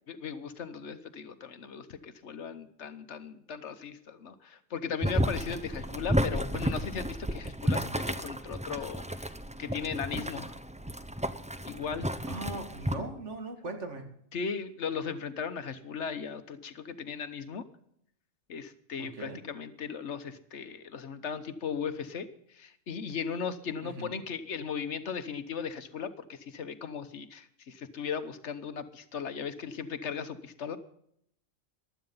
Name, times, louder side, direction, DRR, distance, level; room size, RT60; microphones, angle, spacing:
voice 1, 0.1-9.3 9.6-10.5 11.6-12.1 14.3-17.6 18.5-22.3 22.5-30.8, left 6 dB, 70° left, 11 dB, 1.3 m, -37 dB
Boiling, 5.0-12.9, equal, 10° right, 0.5 m, -32 dB
voice 2, 12.3-14.0 19.0-19.4 23.8-24.2, right 2 dB, 75° right, 5 dB, 2.5 m, -39 dB
15.5 x 11.5 x 5.5 m, 0.69 s
omnidirectional pair, 1.2 m